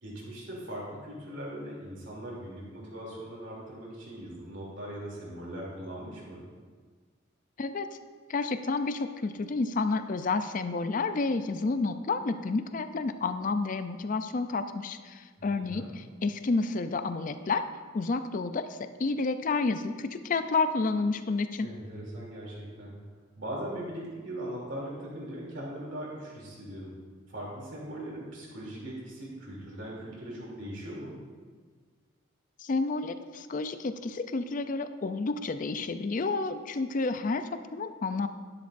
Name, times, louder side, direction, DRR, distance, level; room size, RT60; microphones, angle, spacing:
voice 1, 0.0-6.4 15.4-15.9 21.6-22.9 23.4-26.9 27.3-31.2, right 1 dB, 65° right, -4 dB, 2.9 m, -40 dB
voice 2, 7.6-7.9 8.3-17.6 17.9-21.7 32.6-38.3, left 3 dB, 40° left, 10 dB, 0.4 m, -30 dB
11.0 x 10.5 x 2.6 m, 1.5 s
head